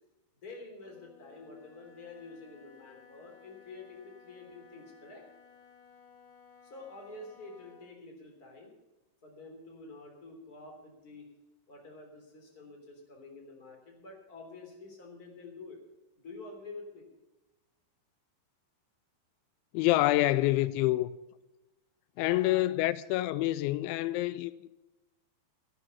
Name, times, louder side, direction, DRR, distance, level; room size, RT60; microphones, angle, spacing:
voice 1, 0.4-5.2 6.6-8.7 9.2-11.3 11.7-15.8 16.2-17.1 22.1-22.7, left 3 dB, 20° left, 3.3 m, -48 dB
Wind instrument woodwind instrument, 0.7-8.0, left 7 dB, 45° left, 2.4 m, -58 dB
voice 2, 19.7-21.1 22.2-24.7, left 16 dB, 90° left, 2.9 m, -27 dB
14.0 x 11.5 x 5.6 m
omnidirectional pair, 5.2 m